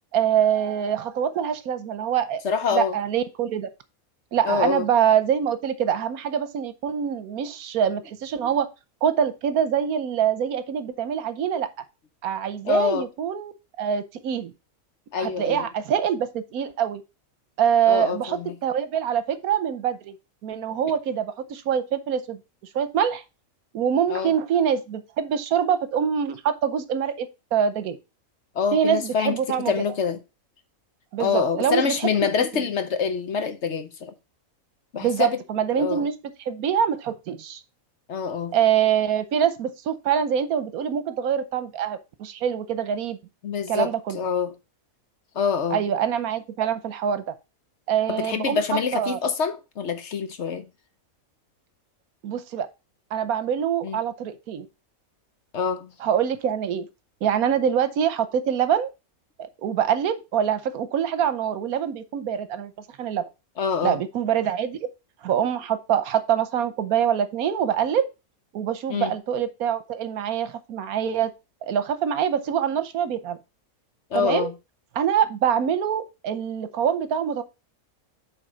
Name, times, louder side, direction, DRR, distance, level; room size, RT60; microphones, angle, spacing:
voice 1, 0.1-3.7 4.3-8.7 9.0-11.7 12.2-13.5 13.8-14.5 15.2-17.0 17.6-20.1 20.4-22.4 22.7-23.2 23.7-28.0 28.7-29.7 31.1-32.3 35.0-36.1 36.5-37.6 38.5-43.2 43.7-44.2 45.7-47.3 47.9-48.6 48.9-49.2 52.2-52.7 53.1-54.7 56.0-56.9 57.2-58.9 59.4-62.7 63.0-63.2 63.8-64.9 65.2-68.1 68.5-71.3 71.6-73.4 74.1-74.5 74.9-77.4, right 8 dB, 80° right, 1.3 m, -24 dB
voice 2, 2.4-3.0 4.4-4.9 12.6-13.1 15.1-15.7 17.9-18.6 24.1-24.3 28.5-29.4 29.7-30.2 31.2-34.1 34.9-35.4 35.7-36.1 38.1-38.5 43.4-44.5 45.3-45.8 48.1-50.7 53.8-54.0 55.5-55.9 63.6-64.0 68.9-69.1 74.1-74.5, left 6 dB, 55° left, 1.1 m, -25 dB
8.2 x 3.6 x 5.0 m
omnidirectional pair, 1.5 m